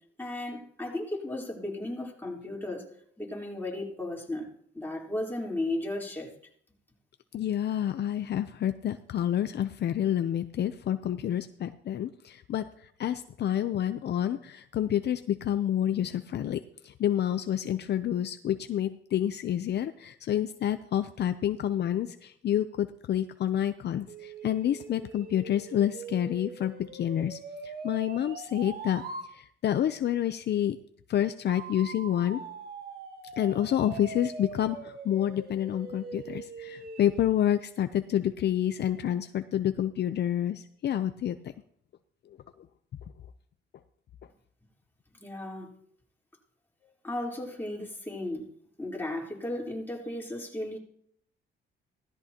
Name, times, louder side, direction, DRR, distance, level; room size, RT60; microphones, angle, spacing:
voice 1, 0.2-2.9 3.2-4.5 4.7-6.3 45.1-45.7 47.0-48.4 48.8-50.8, left 1 dB, 10° left, -2 dB, 3.9 m, -35 dB
voice 2, 7.3-12.7 13.0-29.0 29.3-30.8 31.1-32.4 33.4-41.5, left 10 dB, 60° left, 10 dB, 0.6 m, -28 dB
sound 1, 24.1-29.3 31.5-37.3, right 4 dB, 50° right, 1.9 m, -42 dB
16.5 x 13.5 x 2.9 m, 0.67 s
cardioid pair, 90°, 20 cm